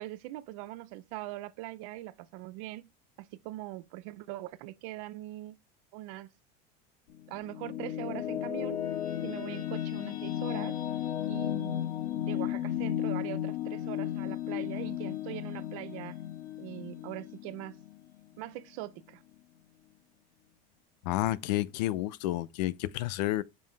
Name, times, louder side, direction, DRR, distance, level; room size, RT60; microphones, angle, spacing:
voice 1, 0.0-2.9 3.2-5.5 5.9-6.3 7.3-8.8 9.2-10.8 11.3-11.9 12.3-16.2 16.6-17.8 18.4-19.2, right 16 dB, 50° right, 0.6 m, -42 dB
sound 1, 7.1-18.4, left 11 dB, 45° left, 1.6 m, -34 dB
voice 2, 21.0-23.4, left 15 dB, 80° left, 0.6 m, -30 dB
7.4 x 5.5 x 3.4 m
cardioid pair, 180°, 21 cm